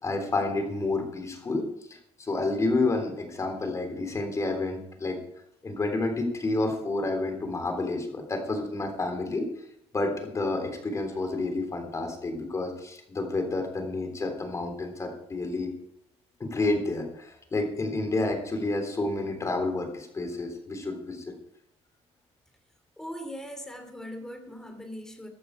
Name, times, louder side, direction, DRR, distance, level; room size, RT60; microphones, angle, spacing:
voice 1, 0.0-5.2 5.6-9.5 9.9-15.7 16.4-21.3, left 2 dB, 25° left, 5 dB, 3.5 m, -29 dB
voice 2, 23.0-25.3, equal, 5° left, 6 dB, 2.7 m, -40 dB
15.0 x 11.5 x 4.8 m, 0.73 s
cardioid pair, 130°, 12 cm